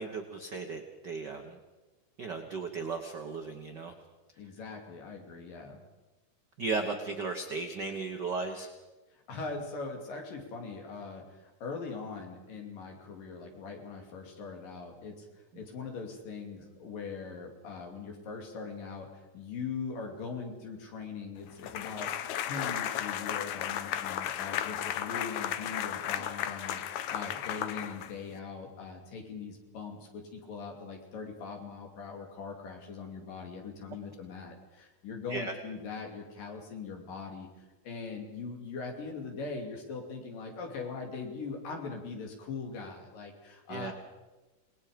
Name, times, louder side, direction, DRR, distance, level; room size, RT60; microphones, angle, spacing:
voice 1, 0.0-1.6 2.2-3.9 6.6-8.7 15.5-15.6 35.3-35.5 43.7-43.9, right 4 dB, 55° right, 4 dB, 1.2 m, -36 dB
voice 2, 4.4-5.8 9.1-15.3 15.5-43.9, left 4 dB, 85° left, 2 dB, 4.4 m, -41 dB
sound 1, 21.6-28.4, left 11 dB, 70° left, 2.0 m, -34 dB
27.5 x 20.0 x 5.2 m, 1.2 s
omnidirectional pair, 3.8 m